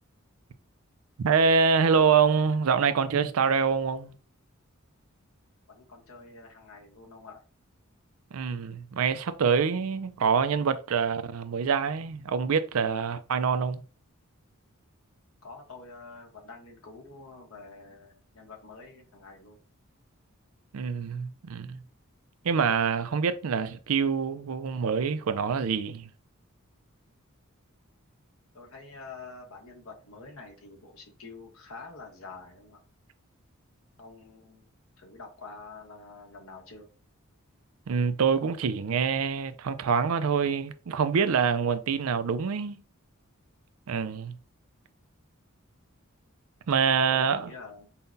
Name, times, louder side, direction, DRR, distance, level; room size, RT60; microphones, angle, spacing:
voice 1, 1.2-4.1 8.3-13.8 20.7-21.8 22.4-26.0 37.9-42.8 43.9-44.4 46.7-47.5, right 6 dB, 80° right, 0.4 m, -25 dB
voice 2, 5.7-7.4 15.4-19.6 28.5-32.8 34.0-34.7 35.0-36.9 47.1-47.9, left 3 dB, 75° left, 1.2 m, -47 dB
5.5 x 2.2 x 2.6 m
head